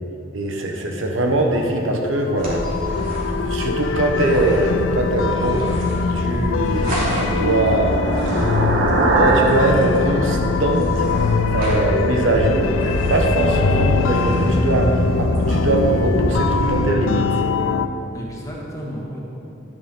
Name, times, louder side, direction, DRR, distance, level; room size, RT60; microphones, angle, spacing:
voice 1, 0.3-2.6 3.4-5.7 6.1-8.4 9.2-11.1 11.5-17.3, right 1 dB, 80° right, 2 dB, 1.1 m, -21 dB
sound 1, 1.1-17.9, left 5 dB, 80° left, 0.4 m, -23 dB
sound 2, 2.4-16.9, equal, 45° right, 2.7 m, -25 dB
sound 3, 6.5-11.3, right 3 dB, 60° right, 1.1 m, -23 dB
voice 2, 13.4-14.1 18.1-19.2, equal, 15° left, -4 dB, 1.6 m, -32 dB
11.0 x 9.5 x 3.8 m, 2.8 s
head